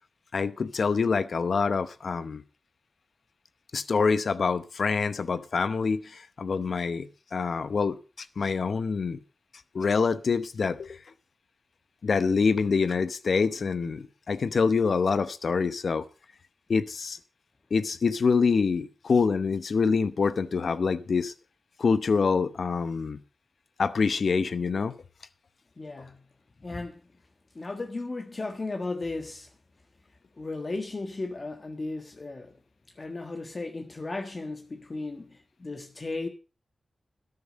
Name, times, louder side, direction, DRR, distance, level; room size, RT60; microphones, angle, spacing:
voice 1, 0.3-2.4 3.7-9.2 9.7-11.0 12.0-16.0 16.7-17.2 17.7-21.3 21.8-23.2 23.8-24.9, left 5 dB, 70° left, 0.8 m, -26 dB
voice 2, 25.8-26.2 26.6-27.0 27.5-29.5 30.4-32.5 33.0-36.3, left 3 dB, 45° left, 1.4 m, -35 dB
12.0 x 9.8 x 5.1 m
cardioid pair, 50°, 0 cm